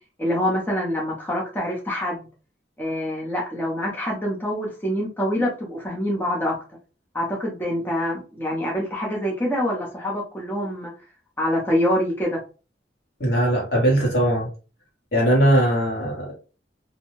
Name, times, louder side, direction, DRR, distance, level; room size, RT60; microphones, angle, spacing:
voice 1, 0.2-2.3 2.8-6.6 7.1-10.9 11.4-12.4, equal, 10° left, 0.6 m, -25 dB
voice 2, 13.2-14.5 15.1-16.3, right 1 dB, 65° left, 1.3 m, -20 dB
2.6 x 2.2 x 3.0 m
head